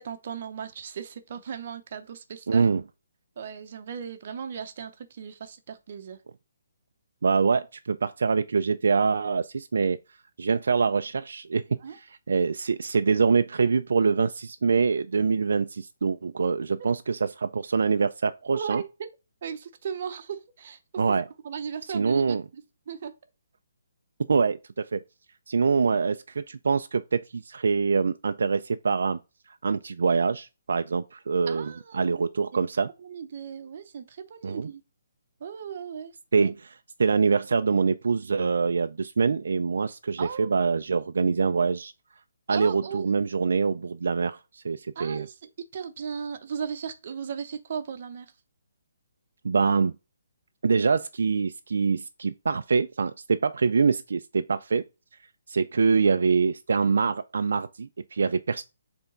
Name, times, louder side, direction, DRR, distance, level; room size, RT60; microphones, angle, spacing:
voice 1, 0.0-2.7 3.4-6.2 11.8-12.0 18.5-19.1 19.4-20.8 21.1-21.2 21.4-23.1 31.5-32.7 33.0-34.8 35.4-36.5 40.2-40.5 42.5-43.1 45.0-48.3, right 7 dB, 35° right, 0.8 m, -37 dB
voice 2, 2.5-2.8 7.2-10.0 10.4-18.8 21.0-21.3 21.9-22.4 24.3-25.0 25.5-29.2 29.5-32.9 34.4-34.7 36.3-41.9 42.5-45.3 49.4-49.9 50.6-54.8 55.5-58.6, right 5 dB, 65° right, 0.4 m, -25 dB
8.1 x 3.5 x 3.9 m
hypercardioid pair, 175°, 0 cm